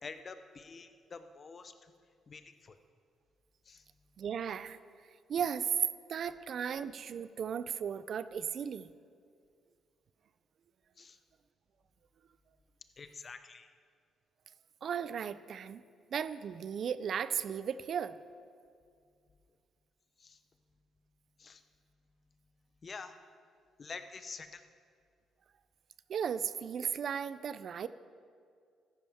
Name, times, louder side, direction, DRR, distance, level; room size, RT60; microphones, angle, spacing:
voice 1, 0.0-1.9 2.3-2.8 3.7-3.8 11.0-11.2 13.0-13.7 20.2-20.4 21.4-21.6 22.8-23.2 23.8-24.6, left 4 dB, 40° left, 9 dB, 0.7 m, -47 dB
voice 2, 4.2-4.8 5.3-5.7 6.1-8.9 14.8-15.8 16.1-18.2 26.1-27.9, right 7 dB, 60° right, 15 dB, 0.4 m, -36 dB
14.0 x 11.0 x 3.5 m, 2.2 s
cardioid pair, 90°, 0 cm